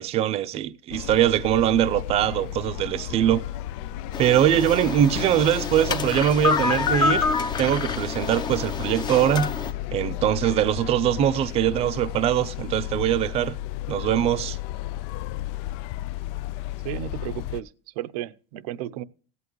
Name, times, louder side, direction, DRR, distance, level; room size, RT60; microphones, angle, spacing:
voice 1, 0.0-3.4 4.2-9.5 9.9-13.6 13.9-14.6, right 11 dB, 30° right, 0.5 m, -22 dB
sound 1, 0.9-17.6, left 13 dB, 60° left, 0.4 m, -33 dB
sound 2, 4.1-9.7, left 4 dB, 25° left, 0.7 m, -27 dB
voice 2, 16.8-17.7 18.0-19.0, right 13 dB, 75° right, 0.7 m, -33 dB
16.5 x 8.3 x 3.1 m
supercardioid pair, 155°, 19 cm